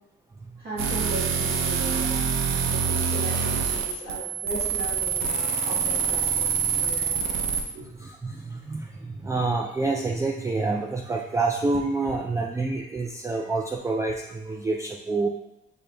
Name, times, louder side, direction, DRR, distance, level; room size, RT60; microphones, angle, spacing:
voice 1, 0.6-2.1 2.7-7.8, right 1 dB, 50° right, -7 dB, 1.5 m, -37 dB
sound 1, 0.8-7.6, right 6 dB, 85° right, 0.6 m, -25 dB
voice 2, 8.0-15.3, right 3 dB, 15° right, 1 dB, 0.3 m, -28 dB
5.2 x 3.9 x 2.2 m, 0.92 s
cardioid pair, 90°, 20 cm